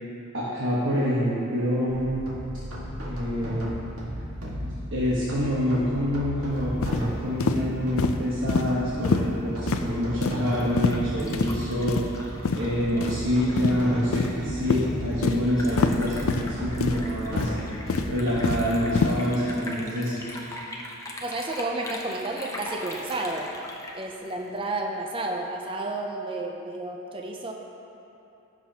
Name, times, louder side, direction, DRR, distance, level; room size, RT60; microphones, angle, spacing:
voice 1, 0.3-2.3 3.0-3.7 4.6-12.0 12.5-17.5 18.1-20.3, equal, 55° right, -8 dB, 1.2 m, -26 dB
sound 1, 1.9-19.1, equal, 85° right, 1.7 m, -35 dB
sound 2, 6.8-7.0 7.4-7.6 8.0-8.2 8.5-8.6 9.0-9.3 9.7-9.8 10.2-10.4 10.8-11.0 11.3-11.5 11.9-12.1 12.4-12.6 13.0-13.2 13.6-13.7 14.1-14.4 14.7-14.8 15.2-15.4 15.8-15.9 16.3-16.5 16.8-17.0 17.4-17.6 17.9-18.6 18.9-19.1, left 4 dB, 75° left, 0.5 m, -25 dB
Liquid, 10.2-24.8, left 1 dB, 15° left, 0.7 m, -41 dB
voice 2, 21.2-23.5 23.9-27.5, right 2 dB, 25° right, 1 dB, 0.5 m, -31 dB
15.5 x 6.1 x 2.9 m, 3.0 s
head